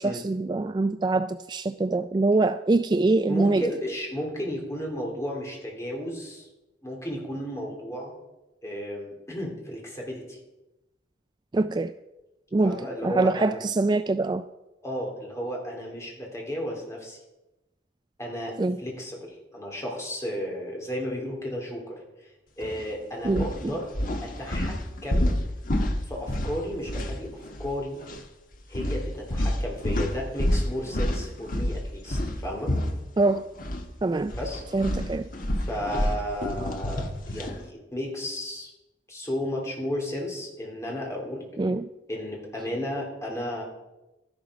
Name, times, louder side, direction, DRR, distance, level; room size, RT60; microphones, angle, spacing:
voice 1, 0.0-3.6 11.5-11.9 12.5-14.4 18.6-18.8 23.2-23.5 33.2-33.4 34.0-34.3 34.7-35.3 41.6-41.9, right 3 dB, 25° right, 11 dB, 0.3 m, -24 dB
voice 2, 3.3-6.5 6.8-8.1 8.6-10.4 12.6-13.6 14.8-17.2 18.2-22.3 22.6-23.9 24.2-25.3 26.1-27.3 27.6-28.0 28.7-32.7 34.4-34.6 35.7-38.7 39.1-41.5 42.1-43.6, equal, 15° left, -1 dB, 3.3 m, -33 dB
sound 1, 22.6-22.8 23.3-27.7 28.0-28.2 28.7-33.9 34.2-37.6, left 1 dB, 50° left, 1.4 m, -29 dB
13.0 x 11.5 x 5.1 m, 1.0 s
head